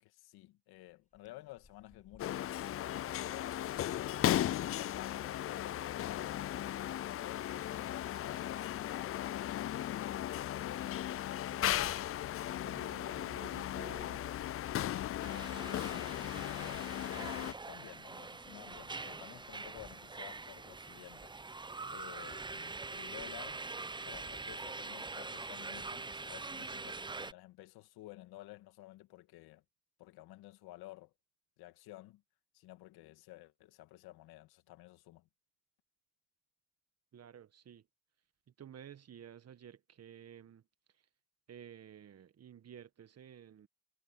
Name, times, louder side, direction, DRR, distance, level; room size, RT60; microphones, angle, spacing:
voice 1, 0.0-4.4 4.8-7.5 7.9-9.8 17.7-21.3 21.9-23.6 23.9-29.6 30.0-31.1 31.6-32.2 32.5-35.3, left 17 dB, 70° left, 2.4 m, -53 dB
sound 1, 1.1-4.5 4.8-15.5, left 3 dB, 20° left, 6.5 m, -67 dB
sound 2, 2.2-17.5, left 12 dB, 35° left, 0.5 m, -36 dB
voice 2, 11.5-12.0 12.5-14.5 15.2-16.4 37.1-37.9 38.5-41.1 41.5-43.7, right 9 dB, 40° right, 1.5 m, -54 dB
sound 3, 15.2-27.3, right 3 dB, 10° right, 0.7 m, -44 dB
supercardioid pair, 75°, 39 cm